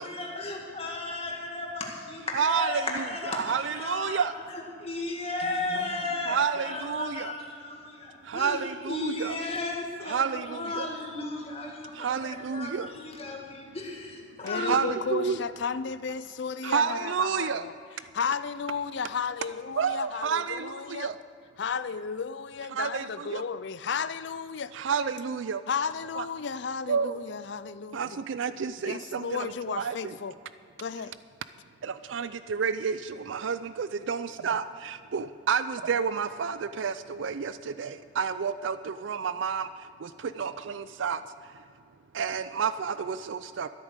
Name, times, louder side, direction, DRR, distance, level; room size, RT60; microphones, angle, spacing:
voice 1, 0.0-4.2 4.8-8.6 8.9-14.8, left 2 dB, 30° left, 2.0 m, -34 dB
voice 2, 2.3-4.3 6.2-7.4 8.2-9.4 10.1-10.9 11.9-12.9 14.6-15.4 16.6-17.7 19.8-21.2 22.7-23.4 24.7-25.6 26.2-26.3 26.9-27.2 27.9-30.1 31.8-41.6 42.1-43.7, right 6 dB, 70° right, 0.4 m, -30 dB
voice 3, 14.4-17.7 18.1-21.1 21.6-24.7 25.7-28.2 28.6-30.4 30.8-31.1, left 6 dB, 60° left, 0.4 m, -33 dB
13.5 x 8.8 x 6.5 m
head